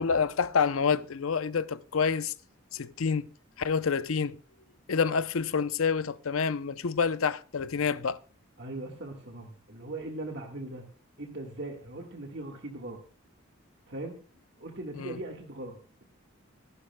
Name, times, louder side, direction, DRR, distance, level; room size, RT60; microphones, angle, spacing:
voice 1, 0.0-2.3 2.7-3.3 3.6-4.4 4.9-8.2 15.0-15.2, left 5 dB, 80° left, 0.6 m, -28 dB
voice 2, 8.6-10.8 11.2-13.0 13.9-14.2 14.6-16.0, right 2 dB, 55° right, 1.6 m, -40 dB
25.0 x 11.0 x 2.2 m
head